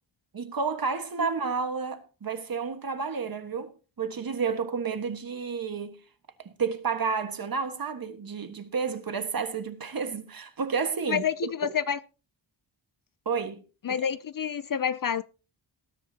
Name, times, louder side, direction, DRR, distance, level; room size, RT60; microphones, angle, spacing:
voice 1, 0.3-6.0 6.4-11.7 13.2-13.6, right 5 dB, 50° right, 1.5 m, -31 dB
voice 2, 11.1-12.0 13.8-15.2, left 8 dB, 45° left, 0.5 m, -28 dB
19.0 x 10.5 x 2.8 m
wide cardioid pair, 160°, 46 cm